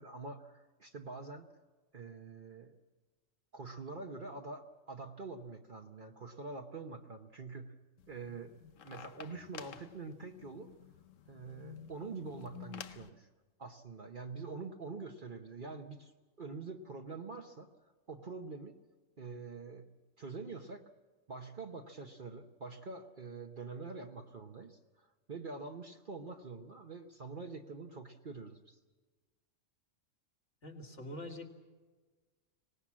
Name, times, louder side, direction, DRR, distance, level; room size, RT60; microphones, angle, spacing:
voice 1, 0.0-1.4 1.9-2.7 3.5-7.7 8.1-8.5 8.8-10.7 11.3-13.3 13.6-16.1 16.4-17.7 18.1-18.8 19.2-19.9 20.2-20.8 21.3-28.8, right 4 dB, 45° right, 3 dB, 1.1 m, -45 dB
sound 1, 8.0-13.1, left 9 dB, 85° left, 1.2 m, -51 dB
voice 2, 30.6-31.6, left 1 dB, 70° left, 1 dB, 2.8 m, -45 dB
25.0 x 19.0 x 7.4 m, 1.3 s
omnidirectional pair, 1.3 m